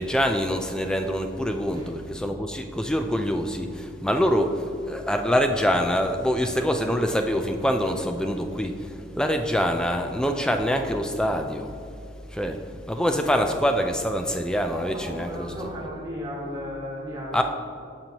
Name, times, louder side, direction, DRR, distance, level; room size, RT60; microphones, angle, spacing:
voice 1, 0.0-8.7 9.2-11.7 12.3-12.6 12.9-15.5 17.3-17.4, equal, 5° left, 5 dB, 0.3 m, -25 dB
voice 2, 14.7-17.3, equal, 20° right, -6 dB, 1.7 m, -35 dB
13.0 x 4.5 x 2.9 m, 2.5 s
head